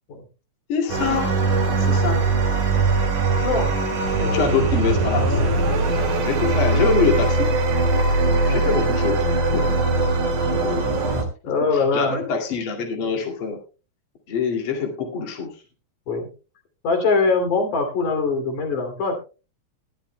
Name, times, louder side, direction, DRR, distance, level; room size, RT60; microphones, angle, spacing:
voice 1, 0.7-1.3 1.8-2.2 4.2-5.5 5.8-7.5 8.5-10.0 10.6-10.9 11.7-13.6 14.3-15.5, left 5 dB, 45° left, 0 dB, 2.9 m, -25 dB
sound 1, 0.9-11.2, right 3 dB, 75° right, 3.9 m, -21 dB
voice 2, 3.4-3.8 4.1-4.5 8.3-8.6 9.2-9.6 10.6-10.7 11.4-12.2 16.1-16.3 16.8-19.2, left 4 dB, 80° left, 4 dB, 4.4 m, -23 dB
21.5 x 11.5 x 2.2 m, 0.33 s
omnidirectional pair, 3.5 m